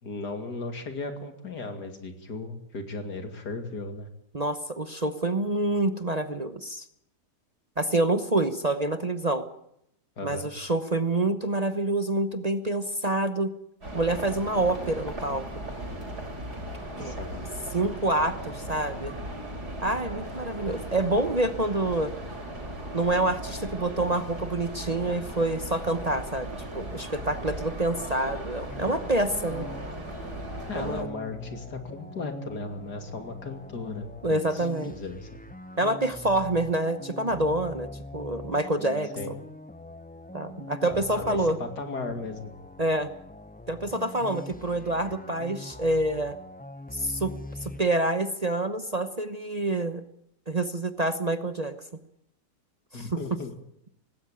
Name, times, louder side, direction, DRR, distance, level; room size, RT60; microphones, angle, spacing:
voice 1, 0.0-4.1 10.2-10.5 17.0-17.5 30.7-35.3 39.2-39.4 40.9-42.5 52.9-53.5, left 3 dB, 85° left, 6 dB, 3.2 m, -36 dB
voice 2, 4.3-6.9 7.8-9.4 10.2-13.5 13.9-15.4 17.0-17.1 17.7-19.1 19.8-22.1 22.9-26.5 26.7-29.7 30.7-31.1 34.2-34.9 35.8-39.1 40.3-41.6 42.8-43.1 43.7-46.4 46.9-47.3 47.6-50.0 50.5-51.7 52.9-53.4, right 2 dB, 30° right, 10 dB, 0.9 m, -27 dB
sound 1, 13.8-31.0, right 1 dB, 80° right, 5.1 m, -37 dB
sound 2, 28.7-47.8, left 2 dB, 10° left, 0.6 m, -43 dB
19.0 x 17.0 x 8.9 m, 0.75 s
omnidirectional pair, 1.7 m